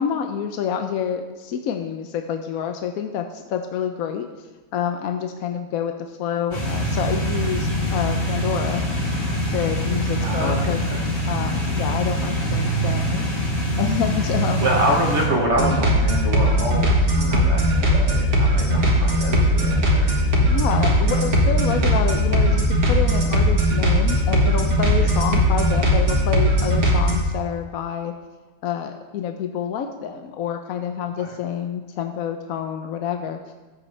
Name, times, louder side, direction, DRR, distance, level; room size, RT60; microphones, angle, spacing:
voice 1, 0.0-4.3 4.7-8.8 9.5-10.8 11.3-14.7 20.4-28.1 28.6-33.4, left 8 dB, 75° left, 5 dB, 1.0 m, -28 dB
sound 1, 6.5-15.3, right 1 dB, 40° left, 2.8 m, -24 dB
voice 2, 10.2-11.0 14.6-20.1 21.0-21.2 25.0-25.1 31.2-31.3, right 1 dB, 50° right, -1 dB, 1.4 m, -26 dB
sound 2, 15.5-27.1, equal, 80° right, 2.1 m, -19 dB
13.5 x 7.8 x 3.3 m, 1.3 s
omnidirectional pair, 1.6 m